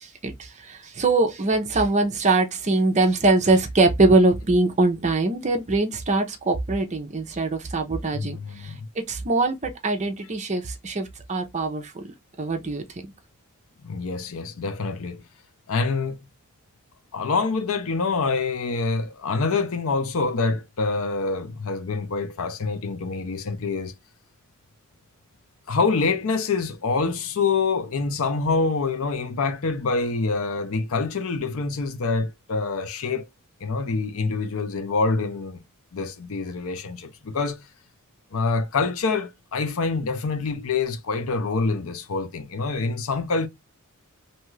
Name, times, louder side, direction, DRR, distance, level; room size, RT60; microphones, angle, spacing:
voice 1, 0.0-8.7 9.1-12.1 12.4-13.1, right 2 dB, 30° right, 0.6 m, -23 dB
voice 2, 8.1-8.9 13.8-15.2 15.7-16.2 17.1-23.9 25.7-33.3 33.6-35.6 35.9-37.6 38.3-43.5, left 4 dB, 65° left, 0.5 m, -26 dB
2.7 x 2.4 x 3.0 m
head